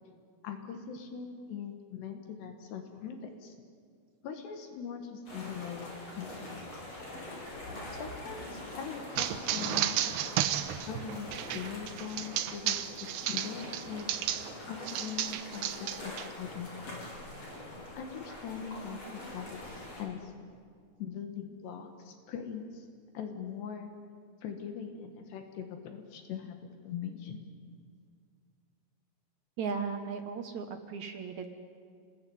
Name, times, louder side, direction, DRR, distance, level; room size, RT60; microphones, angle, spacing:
voice 1, 0.4-3.5 4.2-6.3 7.9-10.0 10.8-14.1 14.7-16.9 17.9-20.3 21.0-22.9 23.1-23.9 24.4-26.6 26.8-27.4, left 7 dB, 80° left, 5 dB, 3.8 m, -41 dB
sound 1, 5.3-20.0, left 1 dB, 35° left, 5.9 m, -44 dB
sound 2, 9.2-14.5 14.9-16.3, right 12 dB, 80° right, 3.0 m, -33 dB
voice 2, 29.6-31.5, right 5 dB, 60° right, 6 dB, 2.0 m, -36 dB
28.5 x 20.5 x 9.3 m, 2.1 s
omnidirectional pair, 4.9 m